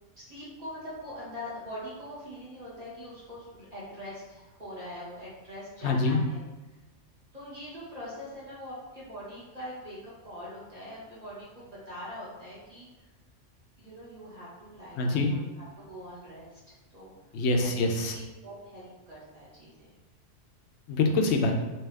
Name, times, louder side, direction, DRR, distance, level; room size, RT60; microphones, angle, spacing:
voice 1, 0.2-6.4 7.3-12.9 13.8-16.6 16.9-17.1 17.6-17.7 18.1-19.9, equal, 35° right, -8 dB, 1.2 m, -43 dB
voice 2, 5.8-6.2 15.0-15.3 17.3-18.2 20.9-21.6, left 3 dB, 70° left, 3 dB, 0.8 m, -25 dB
3.5 x 2.7 x 3.3 m, 1.1 s
omnidirectional pair, 1.3 m